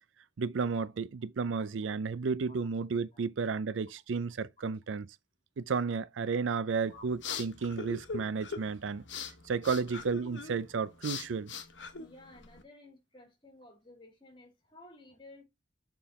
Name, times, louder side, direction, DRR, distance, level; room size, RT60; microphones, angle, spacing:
voice 1, 0.4-5.1 5.6-11.5, right 5 dB, 85° right, 0.5 m, -33 dB
sound 1, 6.7-12.6, left 5 dB, 75° left, 1.0 m, -42 dB
voice 2, 6.9-7.3 12.0-15.4, left 2 dB, 25° left, 2.1 m, -54 dB
6.8 x 3.7 x 4.2 m
head